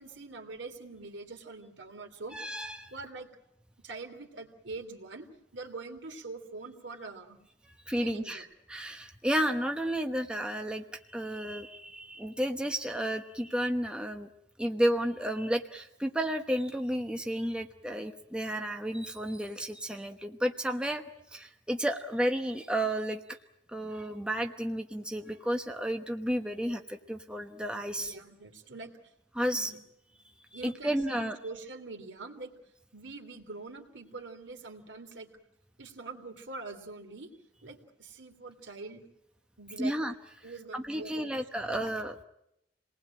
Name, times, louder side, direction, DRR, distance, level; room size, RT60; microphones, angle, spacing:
voice 1, 0.0-2.4 2.9-3.3 3.8-5.3 5.5-7.4 8.0-8.4 28.0-28.9 29.6-29.8 30.5-32.5 32.9-35.3 35.8-37.3 37.6-39.0 39.6-39.9 40.4-41.3 41.6-41.8, right 3 dB, 75° right, 5 dB, 2.9 m, -44 dB
voice 2, 2.3-2.9 7.9-14.3 14.6-21.0 21.3-23.2 23.7-28.1 29.3-29.7 30.6-31.4 39.8-40.1 40.7-42.2, equal, 5° right, 4 dB, 1.0 m, -32 dB
28.0 x 19.5 x 8.8 m, 0.82 s
head